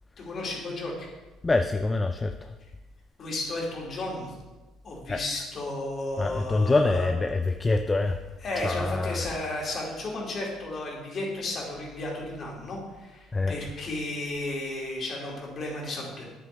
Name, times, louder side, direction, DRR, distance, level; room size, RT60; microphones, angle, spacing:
voice 1, 0.2-1.1 3.2-4.3 4.8-7.1 8.4-16.3, left 2 dB, 40° left, -2 dB, 2.7 m, -33 dB
voice 2, 1.4-2.6 5.1-5.2 6.2-8.2 8.5-9.3 13.3-13.6, left 3 dB, 15° left, 6 dB, 0.4 m, -25 dB
9.4 x 9.0 x 3.4 m, 1.2 s
cardioid pair, 145°, 0 cm